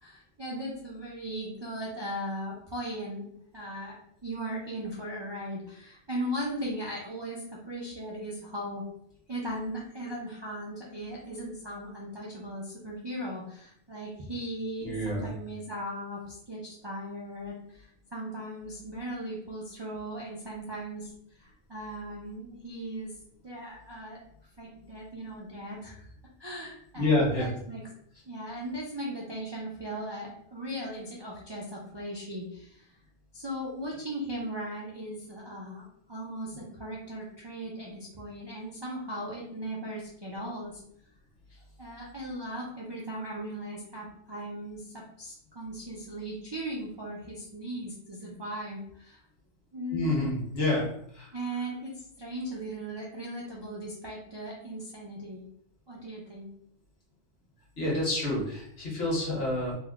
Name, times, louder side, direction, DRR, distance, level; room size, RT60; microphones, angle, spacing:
voice 1, 0.0-3.3 3.5-4.0 4.2-8.8 9.3-21.1 21.4-23.1 23.4-24.2 24.6-26.1 26.4-27.9 28.3-32.9 33.3-35.8 36.1-40.8 41.8-49.2 49.7-50.4 51.3-55.4 55.9-56.5, right 1 dB, 40° right, -5 dB, 0.3 m, -38 dB
voice 2, 14.8-15.3 26.9-27.5 49.9-50.9 51.1-51.3 57.8-59.7, left 2 dB, 60° left, -4 dB, 1.4 m, -28 dB
4.0 x 2.1 x 2.3 m, 0.68 s
omnidirectional pair, 1.2 m